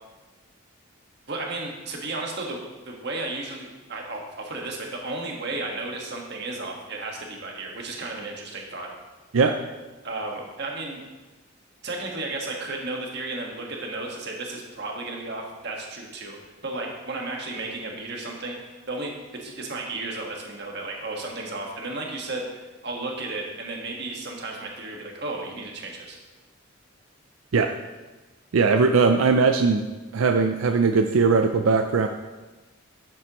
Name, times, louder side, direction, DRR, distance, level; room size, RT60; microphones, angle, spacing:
voice 1, 1.3-8.9 10.0-11.0 11.8-18.5 18.9-26.2, right 2 dB, 55° right, 0 dB, 1.6 m, -33 dB
voice 2, 28.5-29.8 30.1-32.1, right 4 dB, 90° right, 6 dB, 0.5 m, -20 dB
11.0 x 7.6 x 3.0 m, 1.2 s
head